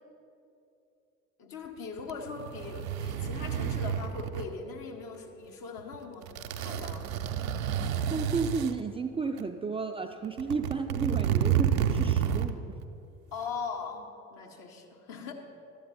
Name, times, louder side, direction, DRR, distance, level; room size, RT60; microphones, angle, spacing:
voice 1, 1.4-7.1 7.8-8.0 13.3-15.3, left 5 dB, 55° left, 2 dB, 1.2 m, -40 dB
sound 1, 2.0-4.5 5.8-6.0 6.2-8.7 9.4-9.5 10.2-12.5 12.8-12.9, right 9 dB, 75° right, 0.6 m, -30 dB
voice 2, 8.1-12.8, right 4 dB, 15° right, 4 dB, 0.4 m, -33 dB
12.5 x 8.5 x 4.2 m, 2.7 s
figure-of-eight pair, 45°, 41 cm